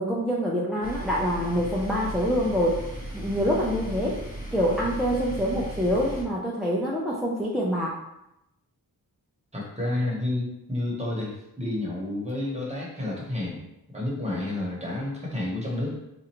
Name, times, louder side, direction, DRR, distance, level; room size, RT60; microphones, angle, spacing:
voice 1, 0.0-2.8 3.1-4.2 4.5-7.9, equal, ahead, -5 dB, 0.4 m, -26 dB
sound 1, 0.8-6.2, right 1 dB, 20° left, 0.9 m, -36 dB
voice 2, 9.5-13.6 13.9-16.0, left 1 dB, 15° right, -4 dB, 1.0 m, -30 dB
4.2 x 2.5 x 2.9 m, 0.87 s
wide cardioid pair, 140°, 38 cm